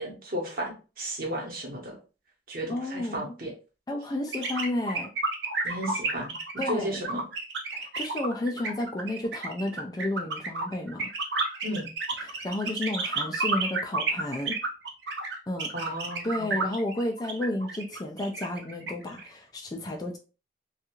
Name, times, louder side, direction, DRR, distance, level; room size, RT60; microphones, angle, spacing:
voice 1, 0.0-2.0 2.5-3.5 5.6-6.3 6.7-7.2 11.6-11.9 15.7-16.6, right 1 dB, 50° right, 1.0 m, -34 dB
voice 2, 2.7-3.3 3.9-5.1 6.6-7.0 7.7-11.1 12.2-14.6 15.5-15.9 16.2-20.2, left 1 dB, 20° left, 0.3 m, -32 dB
sound 1, 4.3-19.3, right 3 dB, 85° right, 0.7 m, -31 dB
2.6 x 2.3 x 2.8 m
head